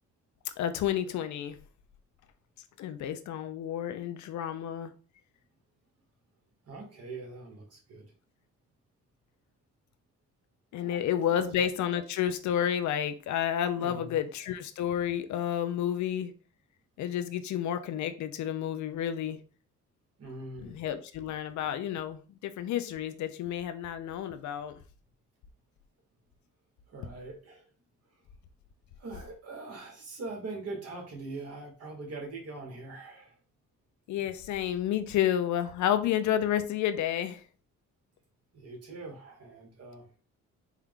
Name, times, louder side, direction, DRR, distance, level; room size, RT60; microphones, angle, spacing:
voice 1, 0.6-1.6 2.8-4.9 10.7-16.3 17.0-19.4 20.6-24.8 34.1-37.4, left 10 dB, 70° left, 0.6 m, -30 dB
voice 2, 6.6-8.1 10.8-11.6 13.8-14.1 20.2-20.8 26.9-27.6 29.0-33.4 38.5-40.1, right 3 dB, 55° right, 1.7 m, -42 dB
4.4 x 2.3 x 3.6 m
cardioid pair, 90°, 30 cm